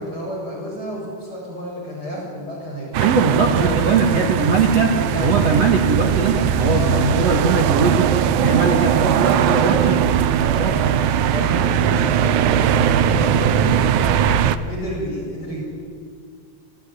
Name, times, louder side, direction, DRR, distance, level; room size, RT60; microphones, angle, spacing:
voice 1, 0.0-4.3 4.6-5.5 6.3-7.1 9.6-10.0 10.3-11.0 11.3-14.2 14.7-15.6, equal, 20° left, -3 dB, 7.4 m, -30 dB
sound 1, 2.9-14.6, right 9 dB, 85° right, 1.7 m, -19 dB
voice 2, 3.0-10.0 10.5-10.8, right 4 dB, 50° right, 2 dB, 2.3 m, -20 dB
26.0 x 19.0 x 9.8 m, 2.2 s
omnidirectional pair, 4.7 m